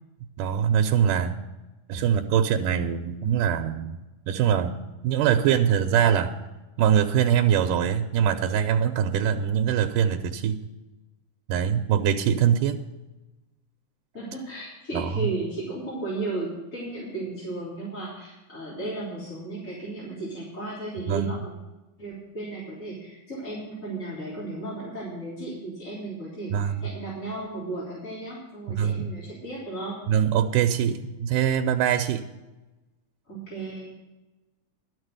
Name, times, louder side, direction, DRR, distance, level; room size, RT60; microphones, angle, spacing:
voice 1, 0.4-1.4 1.9-4.0 4.3-4.8 5.0-6.3 6.8-10.6 11.5-12.8 14.9-15.3 21.1-21.3 26.5-26.9 28.7-29.1 30.1-32.3, right 8 dB, 85° right, 4 dB, 2.2 m, -23 dB
voice 2, 14.1-21.5 22.0-30.0 33.3-33.9, right 2 dB, 25° left, -8 dB, 3.6 m, -34 dB
12.0 x 6.3 x 7.7 m, 1.1 s
omnidirectional pair, 3.7 m